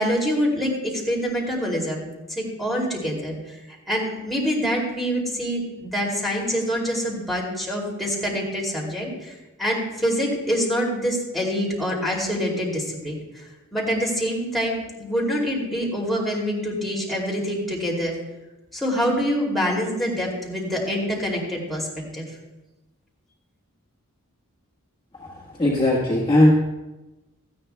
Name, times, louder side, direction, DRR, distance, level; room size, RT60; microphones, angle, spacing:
voice 1, 0.0-3.4 3.9-9.3 9.6-13.2 13.7-18.1 18.7-21.9 22.1-22.2, equal, ahead, -4 dB, 2.5 m, -25 dB
voice 2, 25.6-26.5, left 1 dB, 20° left, -5 dB, 1.4 m, -17 dB
17.0 x 13.0 x 2.2 m, 1.0 s
head